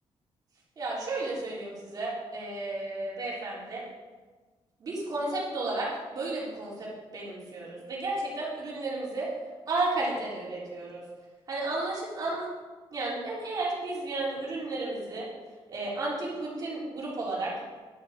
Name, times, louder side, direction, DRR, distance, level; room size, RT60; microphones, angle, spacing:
voice 1, 0.8-3.8 4.8-9.3 9.7-11.0 11.5-12.5 12.9-15.3 15.7-17.5, right 2 dB, 35° right, -6 dB, 3.7 m, -33 dB
11.0 x 6.7 x 6.7 m, 1.3 s
wide cardioid pair, 180°, 10 cm